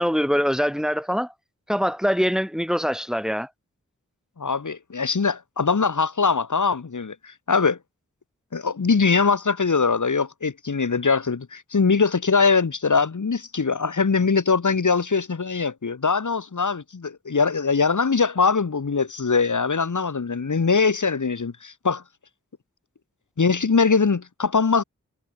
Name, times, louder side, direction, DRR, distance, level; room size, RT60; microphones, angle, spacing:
voice 1, 0.0-1.3 1.7-3.5, equal, ahead, 4.9 m, -23 dB
voice 2, 4.4-7.8 8.5-22.0 23.4-24.8, left 5 dB, 85° left, 6.3 m, -22 dB
wide cardioid pair, 70°, 29 cm